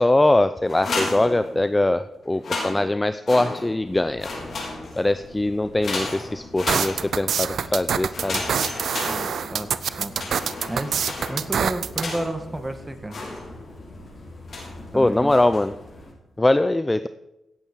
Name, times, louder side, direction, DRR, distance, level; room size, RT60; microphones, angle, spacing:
voice 1, 0.0-4.3 5.0-8.4 14.9-15.7 16.4-17.1, left 2 dB, 20° left, 12 dB, 0.6 m, -22 dB
sound 1, 0.7-1.9 2.3-3.9 4.2-5.2 5.8-7.4 8.1-9.7 10.1-12.5 13.1-13.8 14.5-14.9 15.3-15.8, left 2 dB, 65° left, 4.2 m, -33 dB
sound 2, 3.8-16.1, left 1 dB, 50° left, 4.4 m, -44 dB
sound 3, 6.7-12.0, right 7 dB, 70° right, 0.6 m, -25 dB
voice 2, 9.0-10.1 10.7-11.0 11.3-13.2 14.9-15.3, right 1 dB, 20° right, 8 dB, 1.8 m, -31 dB
17.0 x 8.0 x 4.7 m, 0.93 s
supercardioid pair, 40°, 0 cm